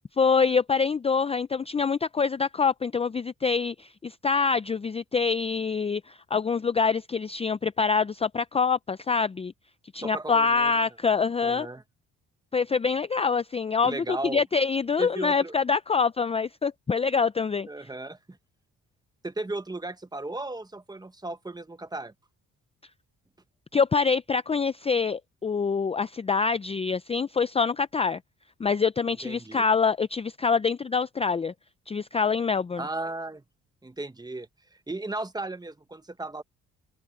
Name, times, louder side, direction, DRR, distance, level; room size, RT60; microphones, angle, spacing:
voice 1, 0.2-9.5 9.9-11.7 12.5-17.7 23.7-28.2 28.6-31.5 31.9-32.8, left 5 dB, 20° left, 0.5 m, -25 dB
voice 2, 10.0-10.7 11.4-11.8 13.8-14.4 15.0-15.5 17.7-18.4 19.2-22.1 29.2-29.6 32.8-33.4 33.8-36.4, right 2 dB, 15° right, 1.3 m, -35 dB
cardioid pair, 90°, 30 cm